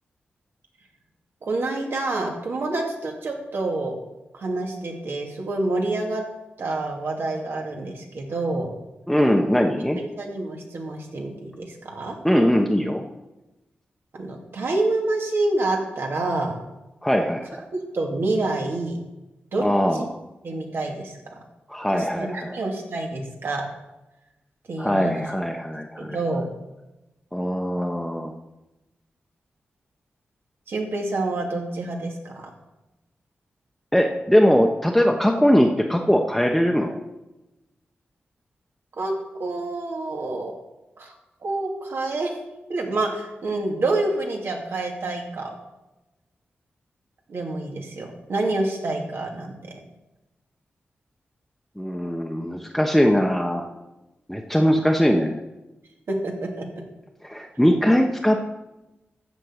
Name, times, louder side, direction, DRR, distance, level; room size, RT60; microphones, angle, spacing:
voice 1, 1.4-4.0 4.3-6.2 6.6-8.7 10.0-12.2 14.1-16.6 17.9-19.0 19.5-19.6 19.9-20.1 20.4-21.4 21.9-23.6 24.7-25.3 26.0-26.5 30.7-32.5 38.9-40.6 41.0-41.1 41.4-42.3 42.7-45.6 47.3-49.7 56.1-56.7, right 2 dB, 70° right, 0 dB, 2.4 m, -27 dB
voice 2, 9.1-10.0 12.2-13.0 17.0-17.6 19.6-20.0 21.7-22.6 24.8-26.2 27.3-28.3 33.9-37.0 51.8-53.7 54.3-55.4 57.2-58.4, equal, 5° left, 2 dB, 1.0 m, -21 dB
13.5 x 4.5 x 8.1 m, 1.0 s
cardioid pair, 75°, 4 cm